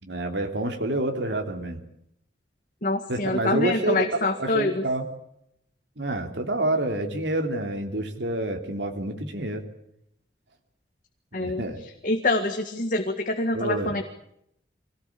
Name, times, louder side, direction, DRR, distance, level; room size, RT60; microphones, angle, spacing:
voice 1, 0.0-1.8 3.1-4.0 4.4-5.0 6.0-9.6 11.3-11.8 13.5-13.9, right 1 dB, 85° right, 4 dB, 3.2 m, -28 dB
voice 2, 2.8-4.8 11.3-11.6 12.0-14.0, left 2 dB, 50° left, 5 dB, 1.9 m, -25 dB
25.0 x 18.5 x 8.6 m, 0.75 s
head